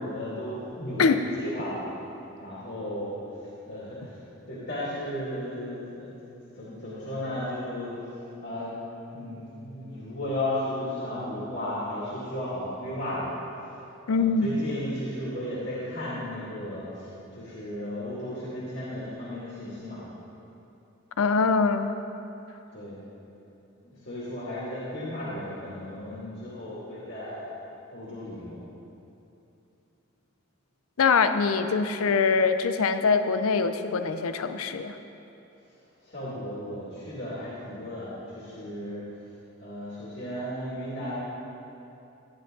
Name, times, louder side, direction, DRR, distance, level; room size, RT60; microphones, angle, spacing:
voice 1, 0.0-1.9 2.4-6.2 6.5-8.0 8.4-8.8 9.1-13.3 14.1-20.0 22.7-23.0 23.8-27.5 27.9-28.6 36.0-39.0 39.6-41.1, left 1 dB, 55° left, -9 dB, 2.5 m, -35 dB
voice 2, 14.1-14.6 21.2-21.9 31.0-35.0, left 4 dB, 90° left, 9 dB, 0.5 m, -23 dB
13.0 x 10.0 x 3.9 m, 2.8 s
head